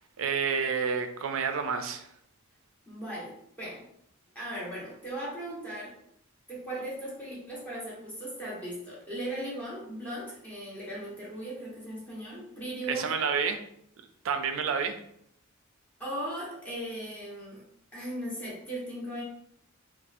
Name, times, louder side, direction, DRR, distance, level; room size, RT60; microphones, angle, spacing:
voice 1, 0.2-2.1 12.9-13.6 14.2-14.9, right 6 dB, 65° right, 7 dB, 0.4 m, -29 dB
voice 2, 2.9-3.8 4.3-5.9 6.5-13.2 16.0-17.6 17.9-19.2, right 1 dB, 10° left, -7 dB, 1.1 m, -38 dB
4.1 x 2.0 x 2.5 m, 0.71 s
head